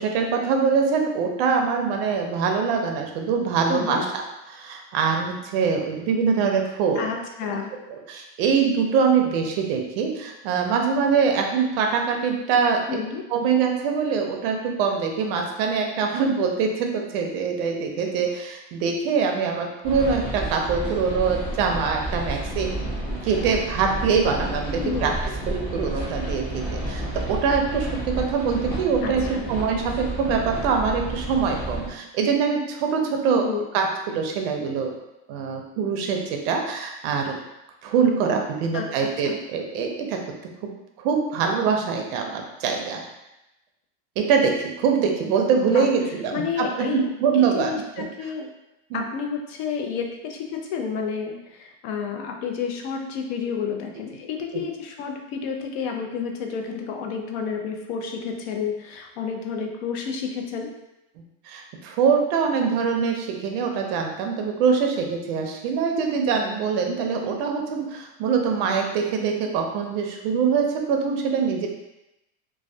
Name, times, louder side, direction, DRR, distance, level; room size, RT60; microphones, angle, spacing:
voice 1, 0.0-4.2 4.5-7.1 8.1-12.8 13.3-22.7 23.2-25.1 25.5-33.4 33.7-34.9 35.3-37.4 37.8-40.2 40.6-40.7 41.0-43.0 44.2-48.0 48.9-49.0 54.5-54.6 61.5-71.7, right 5 dB, 55° right, 2 dB, 0.5 m, -24 dB
voice 2, 3.7-4.0 7.0-7.7 12.9-13.2 24.8-25.1 29.0-29.5 33.3-33.6 38.7-39.4 45.6-45.9 46.3-47.1 47.3-48.5 48.9-60.7, left 6 dB, 60° left, 2 dB, 0.5 m, -30 dB
sound 1, 19.8-31.9, right 1 dB, 15° left, 0.7 m, -31 dB
2.2 x 2.1 x 2.6 m, 0.92 s
supercardioid pair, 160°, 36 cm